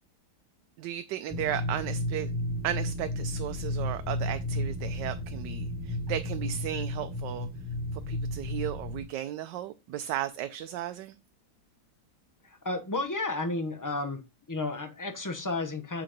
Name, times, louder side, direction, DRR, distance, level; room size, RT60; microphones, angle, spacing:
voice 1, 0.8-2.3 2.6-7.5 7.9-11.2, right 12 dB, 85° right, 10 dB, 1.2 m, -35 dB
sound 1, 1.3-9.0, left 1 dB, 5° right, 1.2 m, -33 dB
voice 2, 12.4-14.2 14.5-16.0, left 2 dB, 20° left, 7 dB, 0.4 m, -32 dB
7.6 x 3.8 x 5.1 m, 0.26 s
omnidirectional pair, 1.9 m